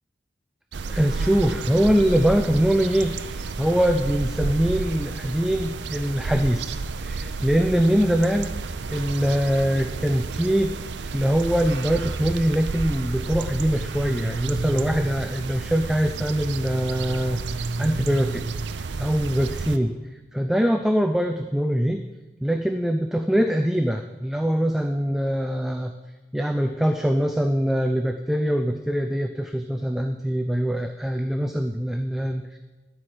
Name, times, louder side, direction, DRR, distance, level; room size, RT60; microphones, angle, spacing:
sound 1, 0.7-19.8, right 4 dB, 80° right, 0.5 m, -31 dB
voice 1, 0.9-8.5 8.9-10.8 11.0-17.4 17.8-18.5 18.7-20.0 20.3-22.0 22.4-25.9 26.3-32.6, equal, ahead, 6 dB, 0.3 m, -23 dB
12.5 x 4.8 x 7.6 m, 1.2 s
head